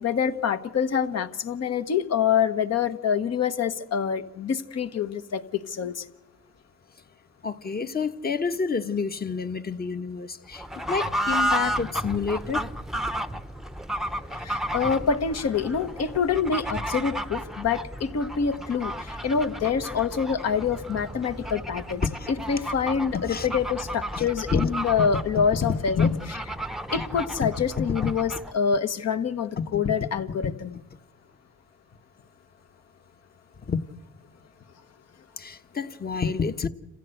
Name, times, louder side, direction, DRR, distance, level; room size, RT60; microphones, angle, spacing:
voice 1, 0.0-6.0 14.3-22.0 22.3-26.1 26.9-30.7, left 6 dB, 55° left, 1.4 m, -26 dB
voice 2, 7.4-12.7 22.0-22.3 23.1-23.5 24.1-24.7 25.4-26.2 27.4-27.5 27.8-28.1 29.6-29.9 30.4-30.5 33.7-33.8 35.4-36.7, left 5 dB, 30° left, 1.2 m, -28 dB
Fowl / Bird, 10.5-28.6, equal, ahead, 0.8 m, -33 dB
27.5 x 16.0 x 8.0 m
cardioid pair, 90°, 30 cm